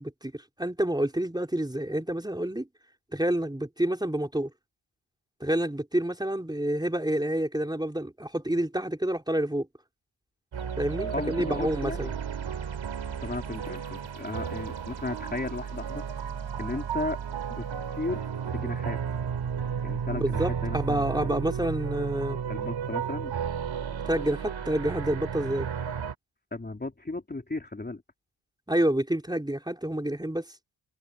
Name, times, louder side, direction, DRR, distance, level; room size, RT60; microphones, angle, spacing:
voice 1, 0.0-2.7 3.1-4.5 5.4-9.7 10.8-12.1 20.1-22.4 24.1-25.7 28.7-30.4, right 1 dB, 10° right, 4.1 m, -28 dB
sound 1, 10.5-26.1, right 7 dB, 65° right, 4.1 m, -33 dB
voice 2, 11.1-12.1 13.2-16.0 16.6-17.2 17.5-17.7 17.9-19.0 19.8-21.3 22.5-23.3 26.5-28.0, left 2 dB, 20° left, 3.5 m, -35 dB
wide cardioid pair, 110°, 50 cm